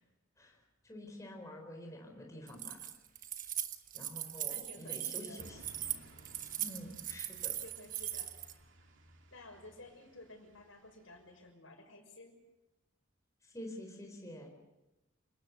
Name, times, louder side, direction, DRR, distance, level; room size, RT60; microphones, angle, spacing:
voice 1, 0.8-2.8 3.9-5.6 6.6-7.5 13.4-14.5, left 1 dB, 15° left, 2 dB, 4.2 m, -48 dB
Keys jangling, 2.5-8.5, right 11 dB, 40° right, 1.3 m, -40 dB
voice 2, 4.2-5.5 7.6-8.6 9.3-12.4, left 2 dB, 75° left, 3 dB, 6.2 m, -54 dB
sound 1, 5.4-11.5, right 1 dB, 65° right, 2.5 m, -59 dB
28.0 x 18.5 x 6.8 m, 0.97 s
head